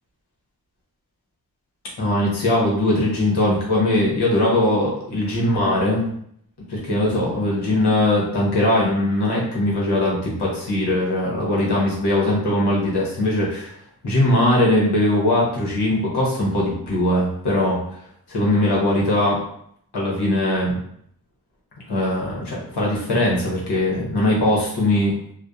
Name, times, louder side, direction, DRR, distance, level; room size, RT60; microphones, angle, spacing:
voice 1, 2.0-6.0 6.7-13.8 14.0-18.0 18.3-19.4 19.9-20.8 21.9-25.2, left 1 dB, 90° left, -4 dB, 0.9 m, -20 dB
2.6 x 2.1 x 2.3 m, 0.67 s
wide cardioid pair, 75°, 39 cm